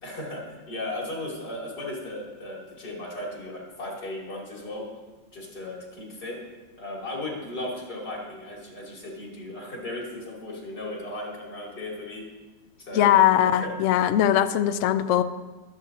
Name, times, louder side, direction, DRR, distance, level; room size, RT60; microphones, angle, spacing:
voice 1, 0.0-4.9 5.3-6.4 6.8-12.2 12.8-13.7, left 1 dB, 55° left, -4 dB, 3.6 m, -36 dB
voice 2, 12.9-15.2, left 11 dB, 85° left, 11 dB, 0.6 m, -20 dB
23.5 x 8.5 x 2.8 m, 1.2 s
omnidirectional pair, 2.0 m